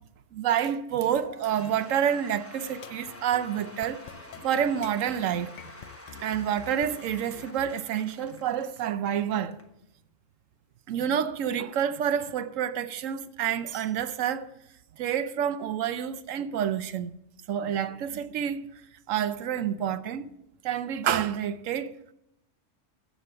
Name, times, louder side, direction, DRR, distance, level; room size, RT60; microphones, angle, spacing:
voice 1, 0.3-4.0 4.4-5.5 6.1-9.6 10.9-14.5 15.0-17.1 17.5-18.7 19.1-20.3 20.6-21.9, right 9 dB, 85° right, 1.0 m, -28 dB
Cheering / Applause / Crowd, 1.0-9.7, left 1 dB, 10° left, 0.9 m, -47 dB
sound 1, 2.7-7.7, left 10 dB, 60° left, 0.5 m, -47 dB
14.5 x 5.3 x 7.8 m
omnidirectional pair, 1.3 m